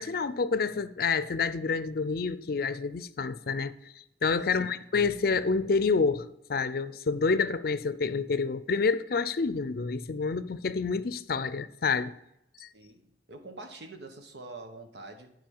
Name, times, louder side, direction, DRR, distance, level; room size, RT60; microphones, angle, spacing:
voice 1, 0.0-3.7 4.2-12.1 12.6-12.7, left 4 dB, 55° left, 0.5 m, -28 dB
voice 2, 4.5-4.8 12.7-15.3, right 2 dB, 75° right, 1.3 m, -46 dB
10.5 x 5.3 x 5.5 m
head